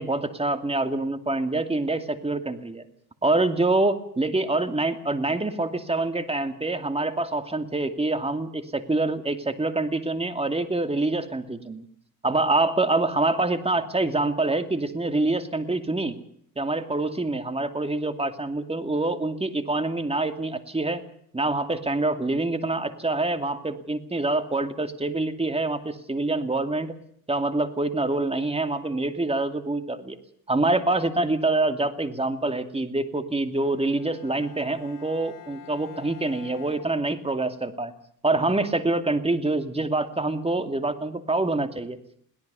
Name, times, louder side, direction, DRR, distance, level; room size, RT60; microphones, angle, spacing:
voice 1, 0.0-2.8 3.2-11.9 12.2-16.1 16.6-21.0 21.3-27.0 27.3-30.2 30.5-37.9 38.2-42.0, right 2 dB, 15° right, 9 dB, 2.5 m, -26 dB
Bowed string instrument, 33.6-37.7, left 9 dB, 70° left, 3.6 m, -47 dB
22.5 x 17.5 x 6.9 m, 0.67 s
cardioid pair, 90°, 34 cm